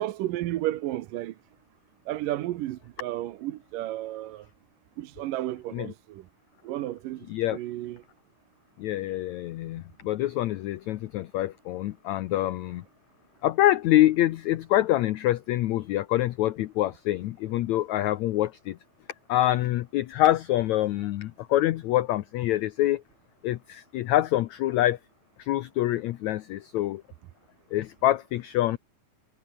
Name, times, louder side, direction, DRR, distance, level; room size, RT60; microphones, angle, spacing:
voice 1, 0.0-1.3 2.1-4.5 5.0-6.3 6.6-8.0, right 15 dB, 75° right, 2.5 m, -32 dB
voice 2, 8.8-12.8 13.4-18.8 19.3-23.0 23.4-25.0 25.4-27.0 27.7-28.8, left 14 dB, 75° left, 1.7 m, -25 dB
omnidirectional pair, 4.2 m